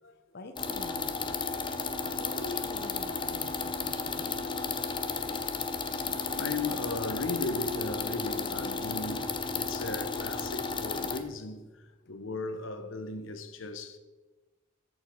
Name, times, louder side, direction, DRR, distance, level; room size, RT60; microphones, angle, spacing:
voice 1, 0.3-1.4 2.2-4.5, left 2 dB, 55° left, 0.8 m, -45 dB
sound 1, 0.6-11.2, left 4 dB, 25° left, 0.7 m, -33 dB
voice 2, 1.7-2.1 5.6-5.7 6.0-14.0, left 3 dB, 80° left, 1.0 m, -37 dB
14.5 x 5.5 x 5.1 m
head